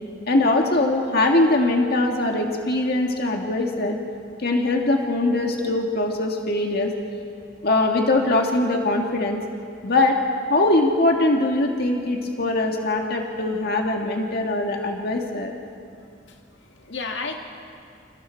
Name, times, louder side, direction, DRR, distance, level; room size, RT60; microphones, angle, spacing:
voice 1, 0.3-4.0 4.4-6.9 7.6-9.4 9.8-10.2 10.5-15.5, left 2 dB, 60° left, 2 dB, 1.9 m, -21 dB
voice 2, 16.3-17.4, left 4 dB, 80° left, 3 dB, 2.0 m, -33 dB
29.0 x 27.0 x 4.6 m, 2.4 s
head